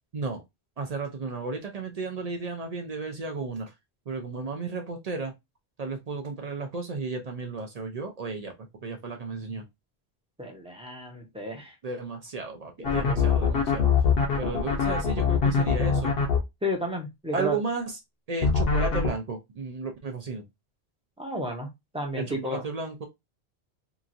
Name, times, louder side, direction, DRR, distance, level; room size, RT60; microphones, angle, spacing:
voice 1, 0.8-3.7 4.1-5.3 5.8-8.5 8.8-9.6 11.8-13.9 14.4-16.1 17.3-17.8 18.3-20.4 22.2-23.1, right 4 dB, 50° right, 0.5 m, -33 dB
voice 2, 10.4-11.7 12.8-13.6 16.6-17.6 21.2-22.7, equal, 5° right, 0.6 m, -33 dB
sound 1, 12.8-16.4 18.4-19.1, left 6 dB, 65° left, 0.9 m, -23 dB
2.9 x 2.4 x 2.5 m
omnidirectional pair, 1.1 m